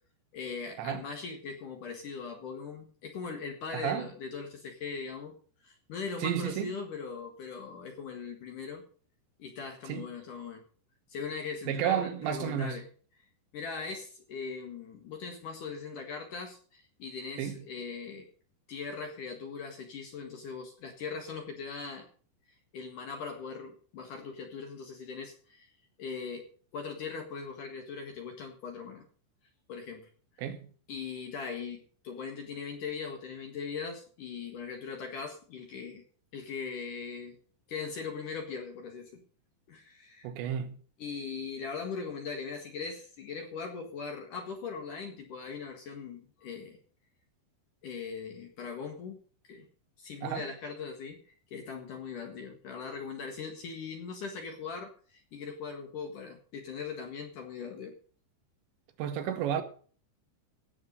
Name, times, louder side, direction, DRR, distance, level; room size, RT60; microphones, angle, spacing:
voice 1, 0.3-5.4 5.6-8.8 9.4-10.6 11.1-12.9 13.5-18.3 18.7-22.1 22.7-25.7 26.0-26.4 26.7-29.0 29.7-30.1 30.9-36.0 36.3-37.4 37.7-39.2 39.7-40.3 41.0-46.8 47.8-49.7 50.0-58.0, left 5 dB, 55° left, 2.5 m, -40 dB
voice 2, 3.7-4.1 6.2-6.7 9.9-10.1 11.7-12.8 17.4-17.6 30.4-30.7 40.2-40.8 50.2-50.5 59.0-59.6, right 9 dB, 75° right, 3.2 m, -32 dB
17.0 x 7.2 x 5.3 m
omnidirectional pair, 5.5 m